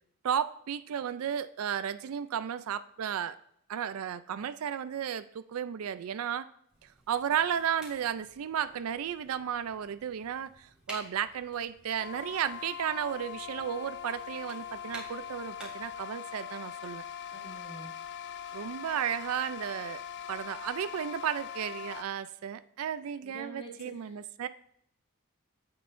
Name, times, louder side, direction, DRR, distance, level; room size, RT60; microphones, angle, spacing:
voice 1, 0.2-3.4 3.7-6.5 7.1-17.0 18.5-20.0 20.3-24.5, right 8 dB, 65° right, 13 dB, 0.4 m, -34 dB
sound 1, 6.7-16.0, right 1 dB, 5° right, 3.3 m, -52 dB
sound 2, 12.0-22.0, left 9 dB, 50° left, 0.3 m, -42 dB
voice 2, 17.3-17.9 23.2-24.0, right 2 dB, 25° left, -1 dB, 2.0 m, -46 dB
16.5 x 5.5 x 2.6 m, 0.69 s
head